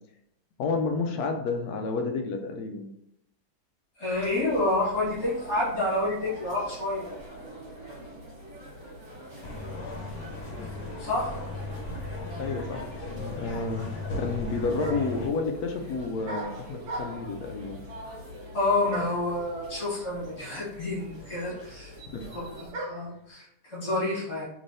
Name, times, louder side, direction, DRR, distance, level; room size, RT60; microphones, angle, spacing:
voice 1, 0.6-2.9 12.4-17.8 22.1-22.2, left 4 dB, 70° left, 4 dB, 1.0 m, -30 dB
voice 2, 4.0-7.1 11.0-11.4 18.5-21.9 22.3-24.4, left 2 dB, 40° left, -8 dB, 1.9 m, -29 dB
sound 1, 4.1-22.7, equal, 45° right, 2.0 m, -44 dB
sound 2, 9.4-15.3, left 2 dB, 85° left, 1.4 m, -37 dB
sound 3, 14.3-14.4 14.8-15.2 16.2-17.4 18.9-19.3 20.2-20.3 20.5-23.2, right 2 dB, 65° right, 1.4 m, -38 dB
3.6 x 3.2 x 2.6 m, 0.77 s
omnidirectional pair, 1.8 m